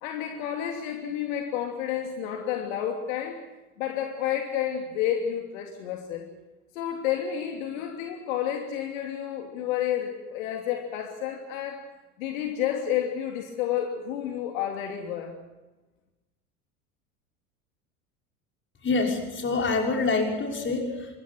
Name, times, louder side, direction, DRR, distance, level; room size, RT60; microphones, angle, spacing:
voice 1, 0.0-3.4 3.8-6.2 6.7-11.8 12.2-15.3, left 10 dB, 60° left, 3 dB, 3.0 m, -30 dB
voice 2, 18.8-21.2, left 3 dB, 25° left, 2 dB, 6.0 m, -26 dB
27.0 x 22.0 x 6.2 m, 1.1 s
figure-of-eight pair, 75°, 45 cm